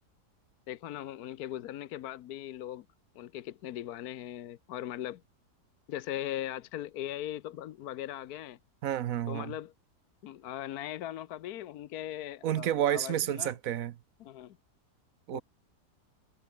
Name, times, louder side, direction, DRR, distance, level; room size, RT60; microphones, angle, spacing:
voice 1, 0.7-2.9 3.1-5.2 5.9-8.6 9.3-9.7 10.2-13.5 14.2-14.6 15.3-15.4, left 12 dB, 70° left, 1.2 m, -39 dB
voice 2, 8.8-9.5 12.4-13.9 15.3-15.4, right 11 dB, 65° right, 1.0 m, -30 dB
omnidirectional pair, 1.8 m